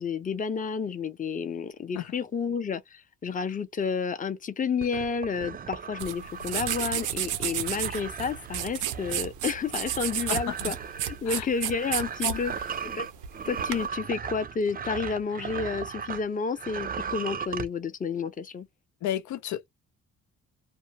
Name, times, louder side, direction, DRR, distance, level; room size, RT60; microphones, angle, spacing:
voice 1, 0.0-10.8 11.1-12.5 12.9-13.1 13.4-18.7, left 5 dB, 25° left, 0.6 m, -30 dB
sound 1, 4.8-16.3 16.5-17.7, right 7 dB, 30° right, 0.4 m, -37 dB
sound 2, 6.0-13.9, right 11 dB, 85° right, 0.7 m, -32 dB
voice 2, 19.0-19.7, left 12 dB, 70° left, 0.5 m, -32 dB
2.5 x 2.1 x 2.9 m
cardioid pair, 90°, 30 cm